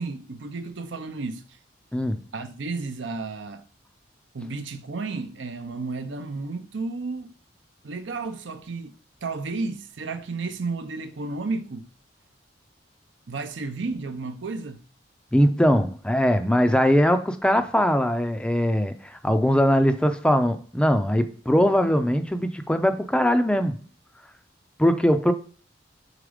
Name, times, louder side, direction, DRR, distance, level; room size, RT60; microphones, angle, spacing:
voice 1, 0.0-1.4 2.3-3.6 4.3-7.3 7.8-8.9 9.2-11.9 13.3-14.8, right 3 dB, 70° right, 0.6 m, -32 dB
voice 2, 15.3-23.8 24.8-25.3, equal, 5° left, 0.4 m, -21 dB
4.9 x 4.0 x 5.0 m
head